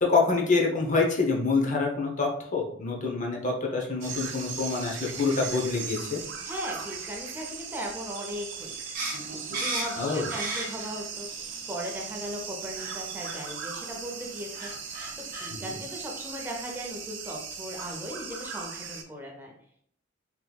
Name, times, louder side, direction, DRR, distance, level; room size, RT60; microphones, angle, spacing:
voice 1, 0.0-6.2 10.0-10.3 15.5-15.7, left 4 dB, 40° left, -1 dB, 0.6 m, -26 dB
sound 1, 4.0-19.0, right 6 dB, 65° right, 0.5 m, -38 dB
voice 2, 6.4-8.9 9.5-19.5, equal, 10° right, 0 dB, 0.5 m, -38 dB
sound 2, 8.9-11.0 11.4-12.1 12.7-13.0 13.2-13.4 14.2-14.3 14.5-15.5, right 2 dB, 45° right, 0.9 m, -34 dB
3.7 x 2.9 x 2.3 m, 0.65 s
head